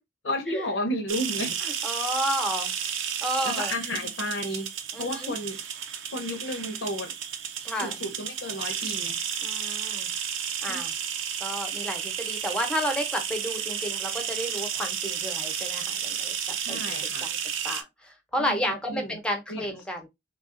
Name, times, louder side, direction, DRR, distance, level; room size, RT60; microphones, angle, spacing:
voice 1, 0.2-1.6 3.4-4.7 5.0-5.6 6.1-7.1 7.8-9.2 10.7-10.8 16.6-17.3 18.4-18.6 18.9-19.2 19.5-19.7, left 1 dB, 80° left, 0.8 m, -32 dB
sound 1, 1.1-17.8, right 8 dB, 80° right, 0.6 m, -32 dB
voice 2, 1.8-2.7 3.2-3.7 4.9-5.3 7.6-8.0 9.4-10.1 10.6-10.9 11.4-16.3 16.7-17.0 17.2-17.4 17.6-20.1, equal, 5° left, 0.8 m, -31 dB
3.4 x 2.4 x 3.7 m
head